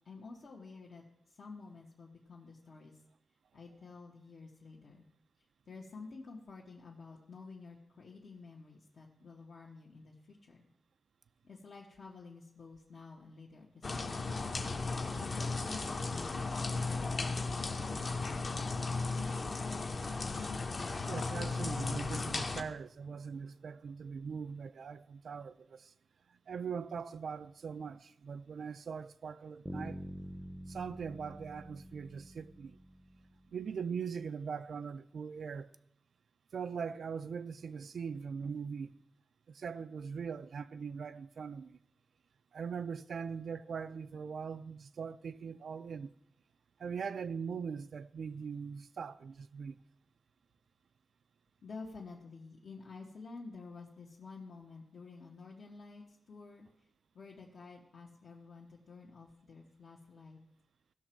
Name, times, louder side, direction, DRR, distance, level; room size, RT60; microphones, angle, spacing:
voice 1, 0.0-3.0 3.5-5.1 5.7-10.6 11.4-14.4 14.9-19.5 51.6-56.7 57.1-60.4, left 4 dB, 70° left, 1.3 m, -51 dB
sound 1, 13.8-22.6, left 3 dB, 45° left, 0.8 m, -36 dB
voice 2, 21.1-25.9 26.3-30.0 30.7-32.8 33.5-35.7 36.5-39.0 39.5-41.8 42.5-46.1 46.8-49.8, right 6 dB, 80° right, 0.3 m, -41 dB
Bass guitar, 29.7-33.6, right 1 dB, 10° right, 0.5 m, -46 dB
17.0 x 6.2 x 4.5 m
wide cardioid pair, 165°, 0 cm